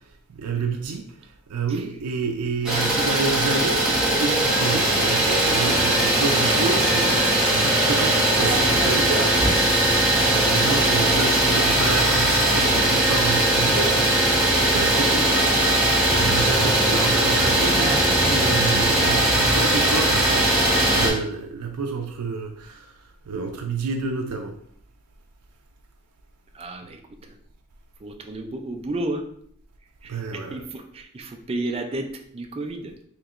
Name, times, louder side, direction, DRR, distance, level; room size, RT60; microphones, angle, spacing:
voice 1, 0.3-9.4 10.3-14.3 14.6-24.6 30.1-30.6, right 4 dB, 85° right, 0.5 m, -29 dB
Idling, 2.6-21.1, right 1 dB, 5° right, 1.1 m, -20 dB
voice 2, 26.5-27.0 28.0-29.2 30.0-32.1 32.3-32.9, right 2 dB, 25° right, 0.4 m, -32 dB
4.6 x 3.0 x 2.4 m
head